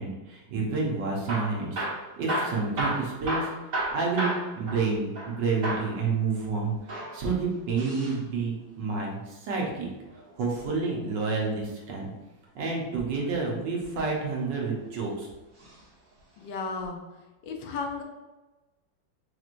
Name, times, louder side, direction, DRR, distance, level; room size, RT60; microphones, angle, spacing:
voice 1, 0.0-1.9 2.2-6.7 7.1-9.9 10.4-12.1 12.5-15.3, right 4 dB, 70° right, -2 dB, 1.5 m, -29 dB
Hammer / Drill, 1.1-5.4 5.6-5.9 6.8-8.2 9.9-11.2 12.9-13.3 14.1-14.9 15.6-15.8 16.1-16.2 16.8-16.9, right 1 dB, 50° right, 1.5 m, -33 dB
voice 2, 16.4-17.0 17.4-18.0, left 4 dB, 80° left, 2 dB, 1.4 m, -34 dB
5.1 x 3.0 x 2.5 m, 1.1 s
omnidirectional pair, 2.1 m